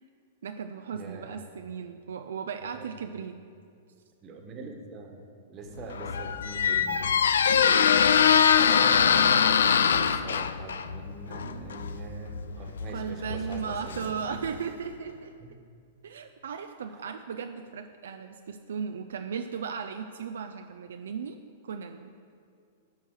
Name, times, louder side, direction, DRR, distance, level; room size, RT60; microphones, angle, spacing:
voice 1, 0.4-3.3 7.6-8.0 11.4-11.7 12.9-15.3 16.0-21.4 21.6-22.1, right 6 dB, 80° right, 7 dB, 0.4 m, -36 dB
voice 2, 0.9-1.4 2.7-2.9 4.2-5.2 5.5-7.2 9.9-14.1 15.4-15.5 16.9-17.1, right 3 dB, 35° right, 3 dB, 1.3 m, -43 dB
Squeak, 5.8-14.6, left 7 dB, 80° left, 0.3 m, -23 dB
10.5 x 4.6 x 6.4 m, 2.3 s
hypercardioid pair, 115°, 0 cm